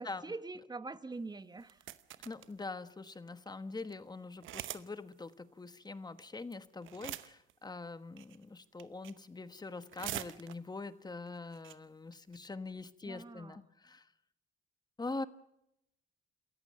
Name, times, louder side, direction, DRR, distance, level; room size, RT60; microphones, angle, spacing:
voice 1, 0.0-1.8 13.0-13.6, right 3 dB, 20° right, 1.1 m, -44 dB
sound 1, 1.6-2.5 3.1-3.2 3.5-3.6 3.8-3.9 4.4-4.9 5.1-5.2 6.2-6.5 6.8-7.5 8.2-8.4 8.8-9.3 9.6-10.8 11.3-11.4 11.5-11.7 12.1-12.4, right 13 dB, 85° right, 0.9 m, -43 dB
voice 2, 2.2-14.1 15.0-15.2, left 3 dB, 20° left, 1.2 m, -44 dB
27.5 x 14.5 x 7.7 m
cardioid pair, 90°, 20 cm